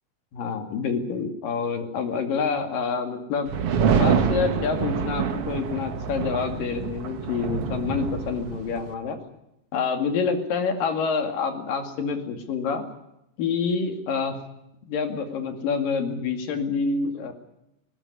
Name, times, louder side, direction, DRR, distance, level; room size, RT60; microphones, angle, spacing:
voice 1, 0.3-3.5 3.9-9.2 9.7-12.8 13.4-14.4 14.9-17.3, left 5 dB, 80° left, 6 dB, 4.0 m, -27 dB
sound 1, 3.5-8.9, right 6 dB, 55° right, 1.9 m, -26 dB
19.5 x 19.0 x 9.8 m, 0.83 s
omnidirectional pair, 3.9 m